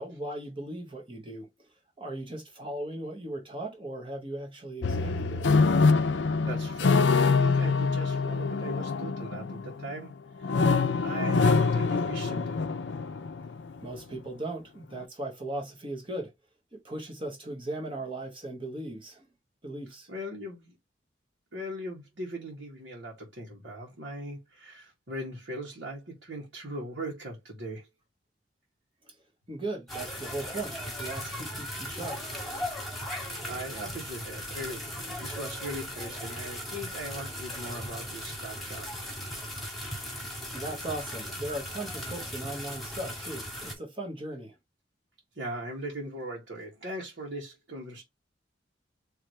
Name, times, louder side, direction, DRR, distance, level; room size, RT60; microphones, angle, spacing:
voice 1, 0.0-1.7 2.0-5.6 13.8-16.3 16.7-19.3 19.6-20.1 29.1-29.2 29.5-32.4 40.5-44.5, right 1 dB, 30° right, 1.1 m, -38 dB
sound 1, 4.8-10.0 10.4-13.5, left 4 dB, 85° left, 0.6 m, -25 dB
voice 2, 6.2-10.1 10.4-12.6 20.1-20.8 21.5-27.9 33.2-34.8 35.2-38.9 45.4-48.0, right 1 dB, 80° right, 1.9 m, -39 dB
sound 2, 29.9-43.7, equal, ahead, 1.8 m, -38 dB
4.8 x 3.2 x 3.3 m
head